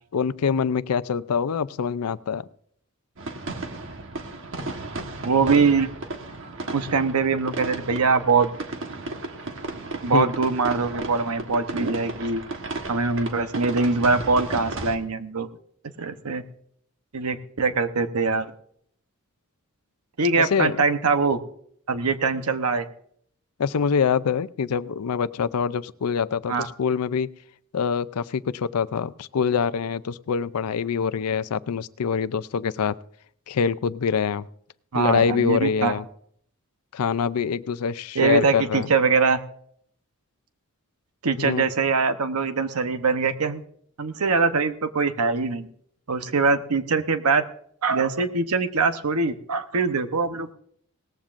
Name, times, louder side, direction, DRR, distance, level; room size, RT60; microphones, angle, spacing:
voice 1, 0.1-2.4 10.1-10.3 20.4-20.8 23.6-27.3 27.7-33.0 33.5-34.4 34.9-36.0 36.9-38.9 41.4-41.7, left 6 dB, 85° left, 16 dB, 0.5 m, -25 dB
sound 1, 3.2-15.0, right 2 dB, 60° right, 1.3 m, -34 dB
voice 2, 5.2-5.9 6.7-8.5 10.0-12.4 12.9-15.5 16.0-16.4 17.1-18.5 20.2-21.4 21.9-22.9 26.5-26.7 34.9-36.0 38.1-39.4 41.2-43.6 44.0-45.7 46.1-47.4 47.8-50.5, right 4 dB, 90° right, 9 dB, 0.9 m, -23 dB
18.5 x 14.5 x 2.5 m, 0.65 s
head